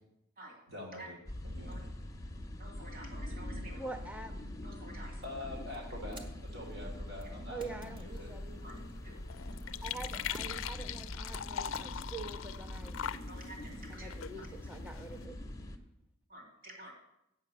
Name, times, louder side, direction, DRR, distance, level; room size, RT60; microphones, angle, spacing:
voice 1, 0.7-1.2 1.4-1.9 5.2-8.3, left 1 dB, 80° right, -2 dB, 3.4 m, -45 dB
sound 1, 1.3-15.8, left 1 dB, 15° left, 0.9 m, -44 dB
voice 2, 2.6-3.9 4.6-5.2 8.6-8.8 9.0-9.2 13.3-14.1 16.3-16.9, right 1 dB, 45° right, 1 dB, 2.2 m, -50 dB
voice 3, 3.8-4.3 7.5-8.8 9.8-13.0 13.9-15.4, right 3 dB, 5° right, 4 dB, 0.5 m, -45 dB
sound 2, 5.2-13.3, equal, 25° right, 1.0 m, -53 dB
sound 3, 8.1-15.3, left 9 dB, 80° left, 0.4 m, -42 dB
8.3 x 5.7 x 7.9 m, 0.82 s
head